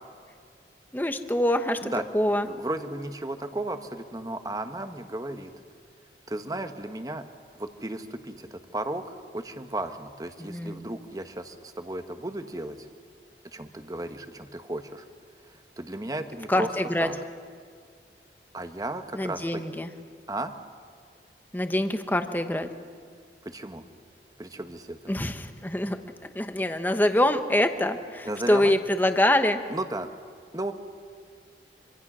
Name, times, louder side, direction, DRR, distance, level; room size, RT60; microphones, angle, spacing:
voice 1, 0.9-2.5 10.4-10.9 16.5-17.1 19.1-19.9 21.5-22.7 25.1-26.0 26.3-29.6, left 1 dB, 10° left, 8 dB, 1.0 m, -25 dB
voice 2, 2.4-5.5 6.3-7.2 7.6-12.9 13.5-15.0 15.5-16.7 17.0-17.2 18.5-19.6 20.3-20.5 23.4-23.8 24.4-25.0 28.2-28.7 29.7-30.1 30.5-30.7, right 1 dB, 20° right, 8 dB, 1.2 m, -34 dB
26.0 x 25.5 x 6.2 m, 2.2 s
head